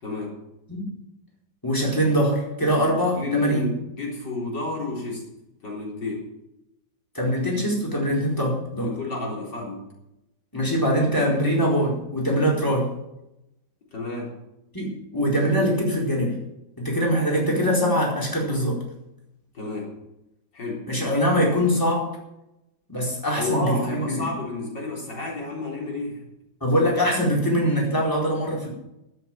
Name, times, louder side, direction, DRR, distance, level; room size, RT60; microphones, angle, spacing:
voice 1, 0.0-0.4 3.1-5.3 5.6-6.3 8.8-9.9 13.9-14.4 19.5-19.9 20.5-20.9 23.3-26.2, left 2 dB, 80° left, -2 dB, 4.5 m, -30 dB
voice 2, 1.6-3.6 7.1-8.9 10.5-12.9 14.7-16.4 16.8-18.8 20.9-22.1 22.9-24.2 26.6-28.7, equal, 10° left, -3 dB, 4.5 m, -23 dB
14.0 x 8.2 x 9.0 m, 0.88 s
omnidirectional pair, 1.9 m